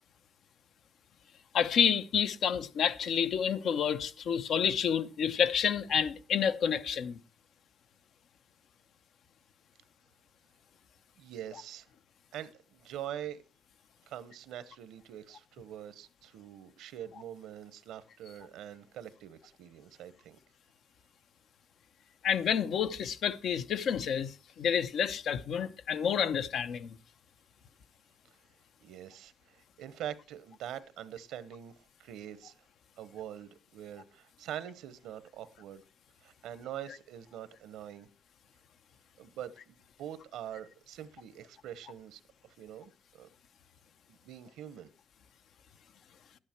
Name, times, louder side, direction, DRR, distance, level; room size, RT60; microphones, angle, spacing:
voice 1, 1.5-7.2 22.2-27.0, left 7 dB, 70° left, 0.8 m, -29 dB
voice 2, 11.2-11.9 12.3-13.4 14.1-20.4 28.8-32.6 33.0-35.8 36.2-38.1 39.2-43.3 44.1-44.9, right 10 dB, 85° right, 1.0 m, -44 dB
11.0 x 9.8 x 4.5 m
cardioid pair, 90°, 0 cm